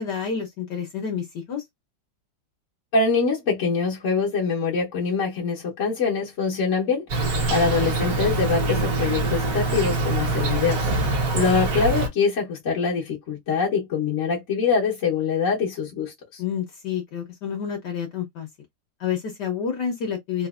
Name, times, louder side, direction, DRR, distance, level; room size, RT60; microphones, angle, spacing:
voice 1, 0.0-1.6 16.4-18.5 19.0-20.5, left 7 dB, 60° left, 1.3 m, -29 dB
voice 2, 2.9-7.0 7.5-10.9 11.3-16.4, left 5 dB, 45° left, 1.0 m, -24 dB
Insect, 7.1-12.1, right 2 dB, 50° right, 1.3 m, -24 dB
4.0 x 2.5 x 2.4 m
omnidirectional pair, 2.3 m